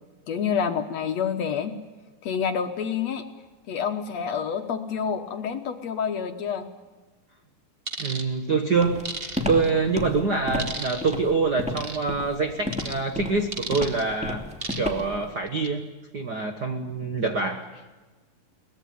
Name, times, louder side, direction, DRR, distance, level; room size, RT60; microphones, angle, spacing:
voice 1, 0.3-1.8 2.2-3.3 3.7-6.7, left 7 dB, 60° left, 7 dB, 2.0 m, -28 dB
sound 1, 7.9-8.2 9.0-9.7 10.6-11.1 11.8-12.0 12.7-13.0 13.5-14.0 14.6-15.0 15.5-15.7, right 3 dB, 30° right, 1.1 m, -34 dB
voice 2, 8.0-9.0 9.5-14.4 14.8-15.9 16.1-17.7, right 4 dB, 60° right, 6 dB, 1.0 m, -25 dB
Walk footsteps, 8.8-15.3, left 2 dB, ahead, 2.2 m, -32 dB
22.5 x 19.5 x 9.4 m, 1.3 s
omnidirectional pair, 4.0 m